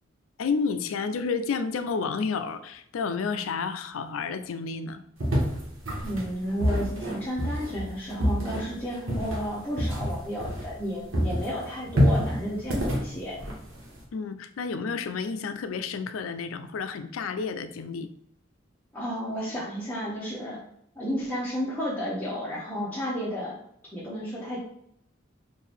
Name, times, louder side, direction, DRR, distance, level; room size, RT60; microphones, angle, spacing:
voice 1, 0.4-5.0 14.1-18.1, left 5 dB, 85° left, 10 dB, 0.4 m, -30 dB
sound 1, 5.2-10.9 11.1-14.0, equal, 80° right, 1.2 m, -27 dB
voice 2, 6.0-13.4 18.9-20.6 20.9-23.5 23.9-24.6, equal, 10° left, -9 dB, 0.9 m, -32 dB
4.5 x 2.6 x 3.4 m, 0.71 s
head